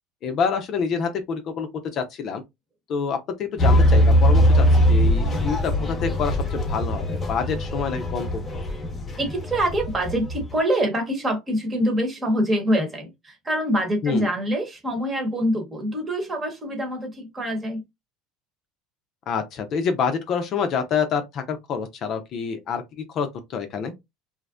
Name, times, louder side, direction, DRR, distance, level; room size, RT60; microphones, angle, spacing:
voice 1, 0.2-2.4 2.9-8.6 14.0-14.3 19.3-23.9, left 6 dB, 50° left, 0.5 m, -27 dB
sound 1, 3.6-10.6, equal, 25° left, 0.8 m, -21 dB
voice 2, 9.2-17.8, equal, 25° right, 1.1 m, -25 dB
2.5 x 2.1 x 2.4 m
supercardioid pair, 95°, 0 cm